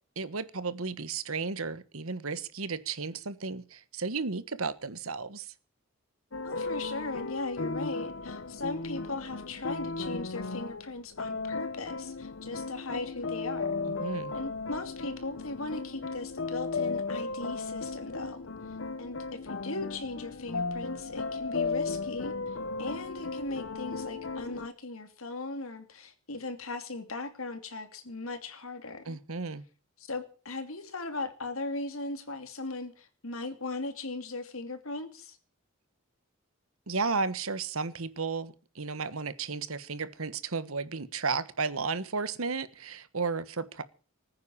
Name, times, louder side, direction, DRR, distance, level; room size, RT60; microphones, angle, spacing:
voice 1, 0.2-5.5 13.9-14.3 29.1-29.6 36.9-43.8, right 4 dB, 85° right, 15 dB, 1.4 m, -33 dB
sound 1, 6.3-24.7, left 3 dB, 65° left, 0.8 m, -35 dB
voice 2, 6.4-13.9 14.3-18.7 19.0-29.2 30.0-35.4, left 3 dB, 80° left, 8 dB, 2.7 m, -38 dB
20.0 x 9.6 x 7.3 m, 0.39 s
head